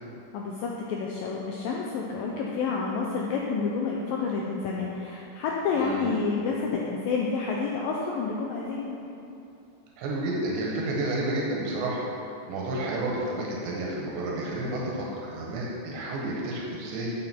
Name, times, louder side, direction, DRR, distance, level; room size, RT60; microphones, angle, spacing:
voice 1, 0.3-9.0, left 4 dB, 80° left, -2 dB, 2.1 m, -29 dB
voice 2, 5.8-6.1 10.0-12.0 12.5-17.1, right 1 dB, 85° right, -3 dB, 3.6 m, -30 dB
12.5 x 7.8 x 4.5 m, 2.8 s
omnidirectional pair, 4.9 m